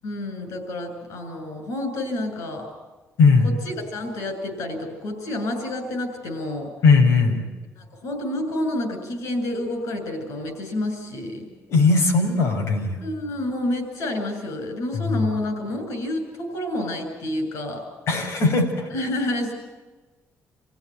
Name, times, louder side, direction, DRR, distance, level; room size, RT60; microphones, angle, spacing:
voice 1, 0.0-2.7 3.4-6.7 7.8-11.5 13.0-17.8 18.9-19.5, left 1 dB, 85° left, 6 dB, 8.0 m, -29 dB
voice 2, 3.2-3.5 6.8-7.4 11.7-13.0 14.9-15.3 18.1-18.9, left 4 dB, 60° left, 1 dB, 5.8 m, -18 dB
28.5 x 16.5 x 9.3 m, 1.2 s
cardioid pair, 175°, 5 cm